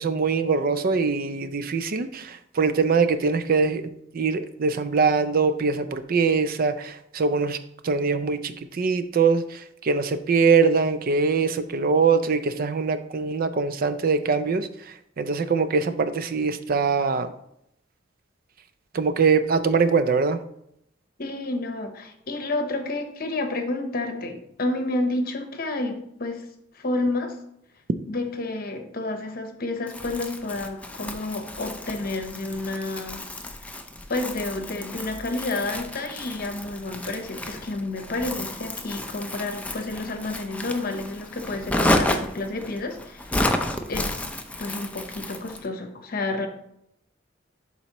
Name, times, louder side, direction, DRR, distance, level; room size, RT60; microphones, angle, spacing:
voice 1, 0.0-3.8 4.1-7.6 7.8-14.7 15.2-17.3 18.9-20.4, right 5 dB, 50° right, 11 dB, 0.4 m, -23 dB
voice 2, 21.2-26.4 26.7-27.4 28.1-33.2 34.1-43.6 43.9-44.3 44.6-46.5, left 2 dB, 55° left, 6 dB, 1.0 m, -30 dB
Crumpling crinkling, 29.9-45.7, left 1 dB, 5° left, 0.5 m, -31 dB
11.0 x 4.1 x 3.0 m, 0.76 s
head